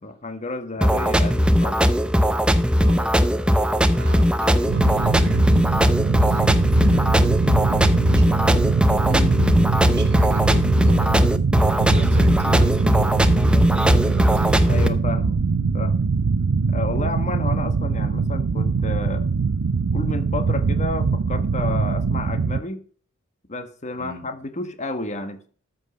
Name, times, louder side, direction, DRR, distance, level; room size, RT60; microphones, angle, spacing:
voice 1, 0.0-1.9 9.0-9.3 14.7-15.4 15.7-16.0 16.7-19.3 19.9-22.8 23.5-25.5, left 2 dB, 35° left, 9 dB, 1.2 m, -31 dB
sound 1, 0.8-14.9, equal, 5° right, 0.7 m, -19 dB
voice 2, 0.8-1.2 2.8-3.2 3.9-8.6 9.0-11.2 11.7-14.9 24.0-24.3, right 2 dB, 50° right, 6 dB, 2.2 m, -38 dB
sound 2, 4.7-22.6, right 4 dB, 85° right, 0.6 m, -22 dB
13.5 x 5.4 x 6.3 m, 0.43 s
head